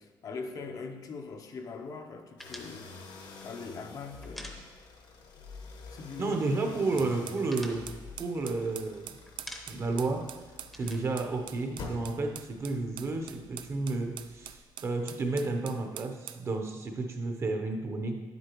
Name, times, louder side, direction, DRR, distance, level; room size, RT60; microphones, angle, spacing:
voice 1, 0.0-3.0 3.4-4.7 5.9-6.4, left 4 dB, 45° left, 5 dB, 0.6 m, -42 dB
sound 1, 2.4-14.8, left 4 dB, 70° left, 1.1 m, -49 dB
sound 2, 2.4-5.2 5.4-5.6 5.9-6.6 6.9-8.9 9.3-10.0 10.3-12.1, equal, ahead, 0.7 m, -48 dB
voice 2, 6.2-7.9 8.2-9.1 9.7-10.3 10.7-18.2, right 3 dB, 35° right, 4 dB, 0.8 m, -31 dB
sound 3, 7.0-16.5, right 11 dB, 85° right, 0.4 m, -45 dB
9.5 x 8.0 x 3.0 m, 1.3 s
cardioid pair, 170°, 8 cm